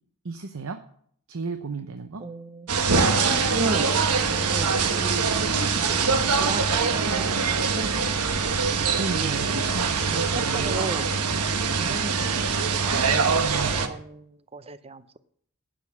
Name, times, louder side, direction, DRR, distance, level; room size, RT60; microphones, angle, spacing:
voice 1, 0.2-0.8 1.3-2.2 9.0-9.8 10.0-10.7 11.7-12.0 13.4-13.9, right 4 dB, 65° right, 8 dB, 0.8 m, -34 dB
voice 2, 2.2-2.7 3.3-3.9 4.3-6.1 6.4-9.4 10.1-10.2 10.5-11.1 11.8-13.1 13.8-15.2, right 2 dB, 25° right, 13 dB, 0.6 m, -36 dB
sound 1, 2.7-13.9, right 5 dB, 90° right, 1.2 m, -23 dB
11.5 x 8.6 x 5.9 m, 0.63 s
head